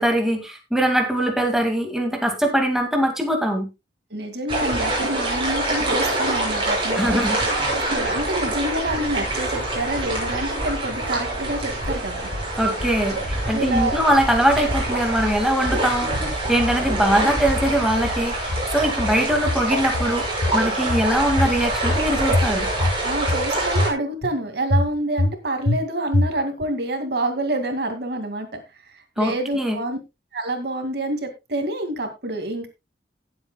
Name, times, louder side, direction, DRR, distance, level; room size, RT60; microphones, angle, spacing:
voice 1, 0.0-3.7 6.9-7.4 12.6-13.2 13.5-20.3 20.5-22.7 29.2-29.8, equal, 5° right, 2 dB, 2.1 m, -22 dB
voice 2, 4.1-12.3 13.5-14.0 17.2-17.4 23.0-30.0 30.3-32.7, right 1 dB, 65° right, 6 dB, 2.2 m, -27 dB
sound 1, 4.5-23.9, right 2 dB, 30° right, 6.0 m, -25 dB
sound 2, 11.8-12.5 12.8-13.4 13.8-14.4 14.7-15.4 15.7-16.3 16.6-17.3 17.6-18.3 18.5-19.2 19.5-20.2 20.4-21.1 21.4-22.0 22.3-23.0 23.3-23.9 24.2-24.3 24.7-25.4 25.7-25.8 26.1-26.6, left 1 dB, 65° left, 0.9 m, -25 dB
18.0 x 8.1 x 2.3 m, 0.23 s
head